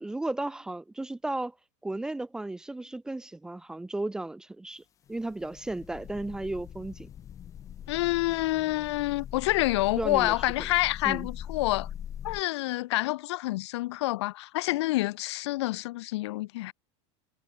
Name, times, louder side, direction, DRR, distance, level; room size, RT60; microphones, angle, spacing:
voice 1, 0.0-1.5 1.8-4.8 5.1-7.1 10.0-10.7 11.0-11.3, right 2 dB, 5° right, 1.3 m, -34 dB
sound 1, 5.1-12.4, left 10 dB, 20° left, 3.3 m, -41 dB
voice 2, 7.9-11.9 12.2-16.7, left 18 dB, 65° left, 4.6 m, -28 dB
supercardioid pair, 175°, 15 cm